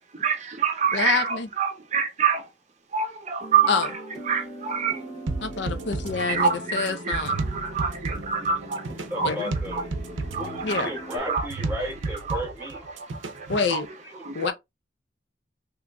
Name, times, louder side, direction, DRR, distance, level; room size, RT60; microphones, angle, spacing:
voice 1, 0.1-2.5 2.9-5.1 6.1-9.9 10.2-11.5 11.9-12.0 12.2-12.4 12.9-13.8 14.1-14.5, right 6 dB, 40° right, 0.6 m, -27 dB
voice 2, 0.9-1.5 3.7-3.9 5.4-7.4 9.2-9.5 10.6-10.9 13.5-13.9 14.3-14.5, left 4 dB, 70° left, 0.5 m, -27 dB
sound 1, 3.4-11.2, equal, 30° left, 2.1 m, -41 dB
sound 2, 5.3-13.7, right 3 dB, 90° right, 0.6 m, -33 dB
voice 3, 9.1-9.9 10.4-12.9, equal, 15° right, 1.5 m, -34 dB
3.6 x 3.0 x 2.2 m
head